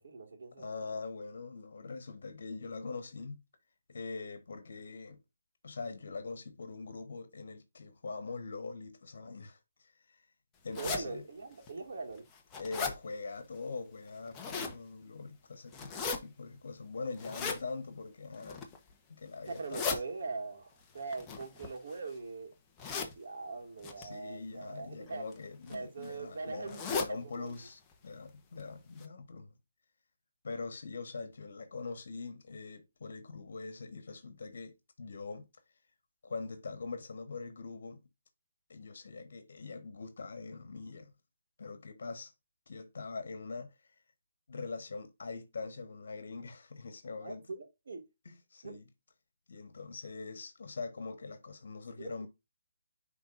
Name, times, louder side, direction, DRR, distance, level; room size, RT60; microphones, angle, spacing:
voice 1, 0.0-0.7 10.8-12.3 19.5-22.5 23.2-25.3 25.7-27.5 47.2-48.1 48.6-48.8 52.0-52.3, right 3 dB, 65° right, 2.2 m, -41 dB
voice 2, 0.6-3.4 3.9-5.2 5.6-10.2 10.6-11.3 12.6-18.8 19.1-20.0 24.0-29.6 30.4-35.5 36.2-38.0 38.7-41.1 41.6-42.3 42.7-43.7 44.5-47.5 48.2-48.9 49.5-52.3, left 4 dB, 65° left, 1.3 m, -43 dB
sound 1, 10.7-11.0 11.7-11.8 12.2-13.0 14.1-14.8 15.7-16.2 17.2-17.6 18.3-18.8 19.5-20.0 21.1-22.1 22.8-23.1 23.8-24.0 25.1-25.3 25.7-25.8 26.0-26.1 26.7-27.1 27.5-27.6 27.9-28.0 28.6-28.7 29.0-29.1, left 5 dB, 15° left, 0.9 m, -37 dB
10.0 x 3.9 x 2.5 m
hypercardioid pair, 170°, 0 cm